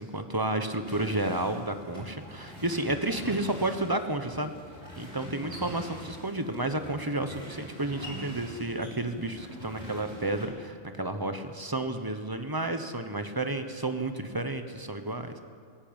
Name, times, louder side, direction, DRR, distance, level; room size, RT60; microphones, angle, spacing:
voice 1, 0.0-4.5 5.0-15.4, right 2 dB, 20° right, 7 dB, 1.1 m, -31 dB
sound 1, 0.8-10.4, equal, 45° right, 7.2 m, -44 dB
17.0 x 17.0 x 8.9 m, 2.1 s
omnidirectional pair, 1.3 m